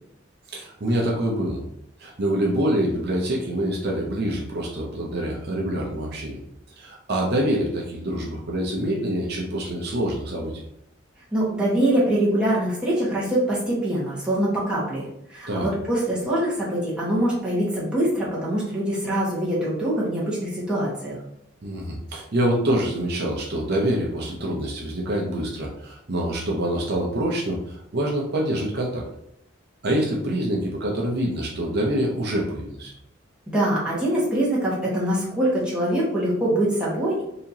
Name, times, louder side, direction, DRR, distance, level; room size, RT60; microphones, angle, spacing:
voice 1, 0.5-1.6 2.0-6.4 6.8-10.5 15.5-15.7 21.6-29.0 29.8-32.9, right 1 dB, 55° right, -2 dB, 0.6 m, -26 dB
voice 2, 11.3-21.2 33.5-37.2, right 1 dB, 5° right, -8 dB, 1.2 m, -24 dB
4.1 x 2.8 x 2.7 m, 0.79 s
head